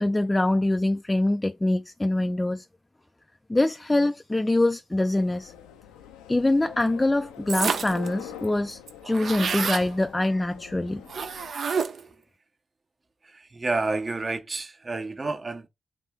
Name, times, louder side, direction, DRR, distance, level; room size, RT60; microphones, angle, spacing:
voice 1, 0.0-2.7 3.5-5.5 6.3-8.8 9.0-11.1, left 2 dB, 20° left, 0.3 m, -24 dB
sound 1, 5.1-11.5, left 10 dB, 85° left, 0.4 m, -45 dB
sound 2, 7.5-8.1 8.4-8.5 8.7-9.9 11.1-12.1, right 6 dB, 60° right, 0.4 m, -28 dB
voice 2, 13.2-15.7, right 3 dB, 35° right, 0.8 m, -30 dB
3.2 x 2.8 x 4.4 m
hypercardioid pair, 40°, 0 cm